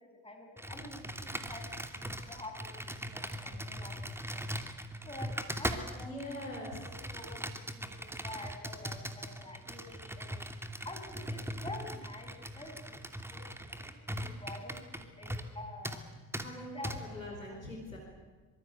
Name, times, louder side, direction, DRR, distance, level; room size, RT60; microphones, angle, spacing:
voice 1, 0.0-4.5 5.0-6.1 6.8-10.4 10.8-13.0 13.3-13.8 14.1-16.0 16.7-16.9 17.7-17.8, left 1 dB, 15° left, 4 dB, 7.2 m, -48 dB
Computer keyboard, 0.6-15.6 15.8-16.0 16.3-16.5 16.8-17.0, equal, 5° right, 2.7 m, -40 dB
voice 2, 6.0-6.9 16.3-18.0, left 1 dB, 85° left, -1 dB, 4.7 m, -43 dB
25.5 x 24.5 x 8.2 m, 1.3 s
figure-of-eight pair, 45°, 39 cm